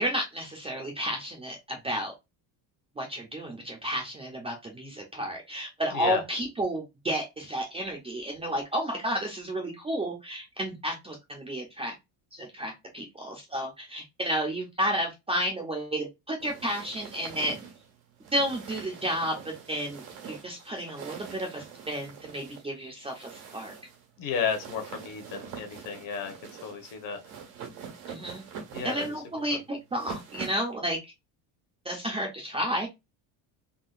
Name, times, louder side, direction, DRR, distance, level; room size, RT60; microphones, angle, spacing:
voice 1, 0.0-2.1 3.0-11.9 12.3-17.5 18.3-23.7 28.1-28.4 28.8-31.0 31.8-32.9, equal, 15° right, 0.5 m, -32 dB
voice 2, 5.9-6.2 24.2-27.2 28.7-29.1 29.5-29.6, left 6 dB, 45° left, 1.0 m, -33 dB
sound 1, 16.4-30.7, right 7 dB, 85° right, 1.5 m, -44 dB
3.7 x 2.3 x 2.4 m
cardioid pair, 160°, 45 cm